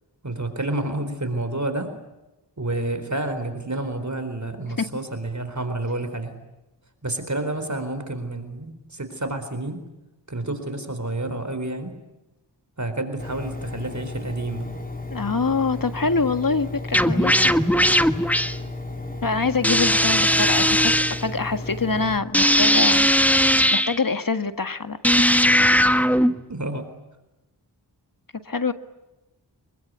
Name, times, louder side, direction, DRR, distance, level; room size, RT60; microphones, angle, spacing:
voice 1, 0.2-1.9 2.6-6.4 7.0-9.8 10.3-11.9 12.8-14.7 26.5-26.9, right 2 dB, 40° right, 9 dB, 4.2 m, -29 dB
Engine, 13.2-22.2, left 2 dB, 20° left, 3.4 m, -34 dB
voice 2, 15.1-17.5 19.2-23.1 23.7-25.1 28.5-28.7, left 4 dB, 50° left, 10 dB, 1.8 m, -25 dB
sound 1, 16.9-18.6 19.6-21.2 22.3-24.0 25.0-26.5, equal, 5° left, 1.3 m, -18 dB
26.0 x 23.0 x 9.5 m, 1.0 s
wide cardioid pair, 50°, 43 cm